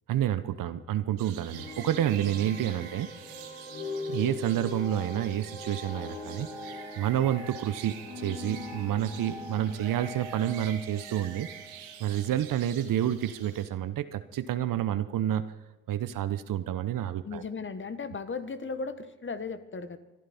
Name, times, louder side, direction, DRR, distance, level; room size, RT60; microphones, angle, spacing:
voice 1, 0.1-3.1 4.1-6.5 7.0-11.5 12.0-15.4 15.9-17.4, right 11 dB, 55° right, 13 dB, 1.0 m, -29 dB
sound 1, 1.2-13.7, right 9 dB, 80° right, 1.7 m, -47 dB
sound 2, 1.5-12.7, left 2 dB, 85° left, 5.1 m, -41 dB
voice 2, 17.2-20.0, left 4 dB, 30° left, 11 dB, 1.4 m, -36 dB
25.0 x 11.0 x 4.3 m, 1.1 s
hypercardioid pair, 55°, 39 cm